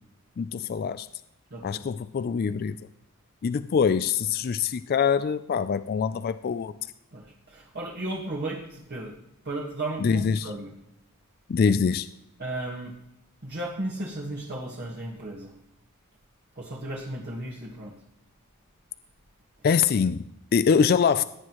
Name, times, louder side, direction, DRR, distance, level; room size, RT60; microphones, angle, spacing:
voice 1, 0.4-1.1 1.6-2.8 3.4-6.7 10.0-10.5 11.5-12.1 19.6-21.2, left 6 dB, 45° left, 13 dB, 0.3 m, -24 dB
voice 2, 1.5-1.8 7.1-9.1 9.4-10.7 12.4-12.9 13.4-15.5 16.6-17.9, right 1 dB, 45° right, -3 dB, 1.4 m, -35 dB
17.0 x 9.4 x 3.0 m, 0.85 s
head